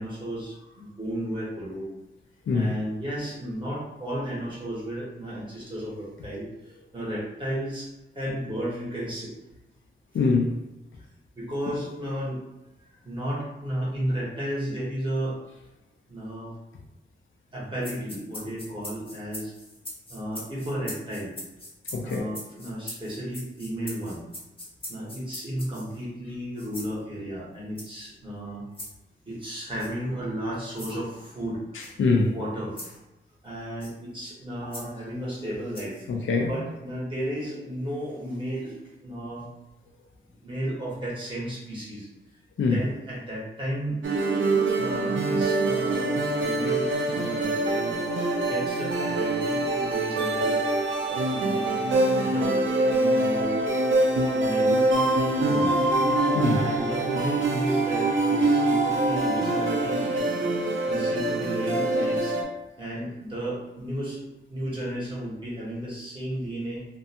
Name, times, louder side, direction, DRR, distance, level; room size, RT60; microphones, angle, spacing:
voice 1, 0.0-1.9 2.5-9.3 11.3-12.4 12.8-15.4 16.1-16.5 17.5-19.5 20.1-21.4 22.0-24.2 24.9-28.6 29.3-31.6 32.3-33.0 33.4-36.1 36.4-39.5 40.3-42.1 42.6-44.0 44.8-48.0 48.4-50.6 51.1-52.6 52.9-53.6 54.3-54.8 55.3-55.8 56.5-60.3 60.8-62.4 62.8-66.9, equal, 25° right, -7 dB, 1.1 m, -33 dB
voice 2, 10.1-10.6 21.9-22.2 32.0-32.4 36.1-36.6 42.6-42.8 56.3-56.6, left 4 dB, 85° left, 1 dB, 0.5 m, -23 dB
sound 1, 17.8-26.0 26.6-26.9 27.7-28.1 28.7-28.9 29.8-29.9 30.7-31.0 31.8-31.9 32.8-33.0 33.8-34.0 34.7-34.9 35.7-36.0, left 1 dB, 30° left, 0.7 m, -41 dB
sound 2, 44.0-62.4, right 2 dB, 80° right, 0.5 m, -24 dB
2.6 x 2.2 x 2.7 m, 1.0 s
wide cardioid pair, 125°, 20 cm